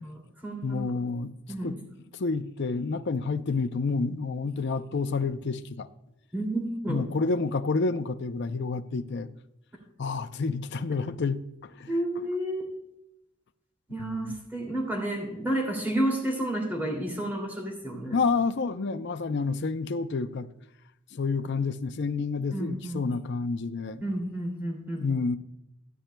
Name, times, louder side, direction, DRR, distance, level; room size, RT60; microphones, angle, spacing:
voice 1, 0.0-0.8 1.5-1.8 6.3-7.0 11.9-12.7 13.9-18.2 22.5-23.0 24.0-25.0, right 1 dB, 10° right, 2.5 m, -31 dB
voice 2, 0.6-1.4 1.6-1.8 2.2-5.9 6.9-9.3 10.0-11.9 14.0-14.4 18.1-20.5 21.1-24.0 25.0-25.4, left 4 dB, 55° left, 0.5 m, -29 dB
16.0 x 10.0 x 2.2 m
head